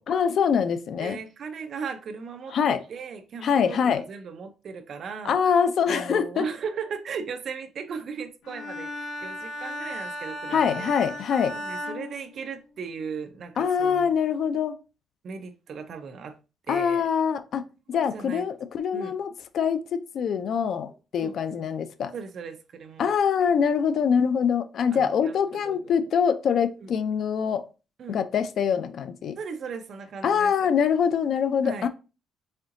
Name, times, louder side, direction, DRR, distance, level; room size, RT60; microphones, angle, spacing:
voice 1, 0.1-1.2 2.5-2.8 3.4-4.0 5.2-6.4 10.5-11.5 13.6-14.8 16.7-22.1 23.0-27.6 28.1-29.4 30.2-31.9, left 7 dB, 50° left, 0.4 m, -24 dB
voice 2, 1.0-10.9 11.5-14.1 15.2-16.4 16.7-17.1 17.9-18.5 18.9-19.2 21.2-21.3 22.1-23.5 24.9-25.4 25.6-25.9 26.8-26.9 28.0-28.2 29.4-30.7 31.6-31.9, right 5 dB, 45° right, 0.5 m, -37 dB
Bowed string instrument, 8.4-12.9, equal, 80° left, 1.3 m, -36 dB
4.2 x 3.8 x 2.5 m
cardioid pair, 155°, 0 cm